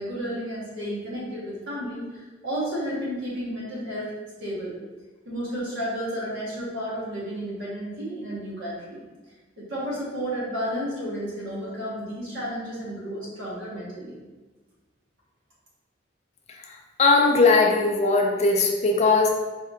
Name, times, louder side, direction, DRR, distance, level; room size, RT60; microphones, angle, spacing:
voice 1, 0.0-4.1 4.4-4.7 5.2-9.0 9.6-14.2, equal, 85° right, -7 dB, 1.4 m, -32 dB
voice 2, 16.6-19.3, left 3 dB, 35° left, 1 dB, 0.4 m, -20 dB
4.3 x 2.7 x 2.4 m, 1.2 s
head